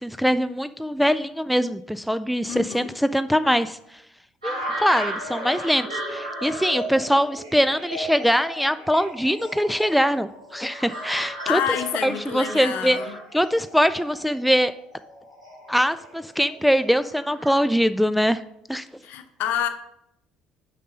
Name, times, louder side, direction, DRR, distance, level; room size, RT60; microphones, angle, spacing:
voice 1, 0.0-3.8 4.4-11.6 12.0-13.0 13.3-14.7 15.7-18.4 18.7-18.8, equal, ahead, 12 dB, 0.3 m, -22 dB
voice 2, 2.5-2.9 11.5-13.1 19.0-19.7, left 9 dB, 55° left, 9 dB, 0.8 m, -28 dB
sound 1, 4.4-17.6, right 1 dB, 85° right, 2.2 m, -35 dB
6.5 x 5.1 x 5.4 m, 0.79 s
figure-of-eight pair, 55°, 4 cm